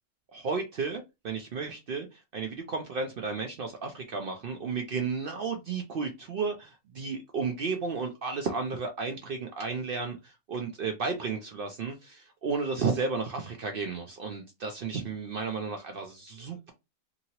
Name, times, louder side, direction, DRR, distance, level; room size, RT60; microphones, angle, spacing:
voice 1, 0.3-16.7, right 4 dB, 75° right, 0.5 m, -33 dB
2.8 x 2.7 x 2.8 m
omnidirectional pair, 1.5 m